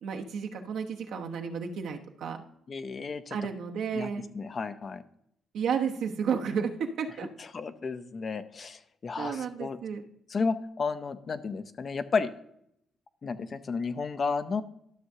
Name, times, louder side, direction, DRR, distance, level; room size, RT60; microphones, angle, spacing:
voice 1, 0.0-2.4 3.3-4.3 5.5-7.3 9.2-10.0, right 6 dB, 75° right, 3 dB, 1.0 m, -32 dB
voice 2, 2.7-3.4 3.9-5.0 7.4-9.8 10.3-12.3 13.2-14.6, left 4 dB, 45° left, 11 dB, 0.6 m, -32 dB
12.5 x 6.3 x 2.8 m, 0.72 s
cardioid pair, 90°, 0 cm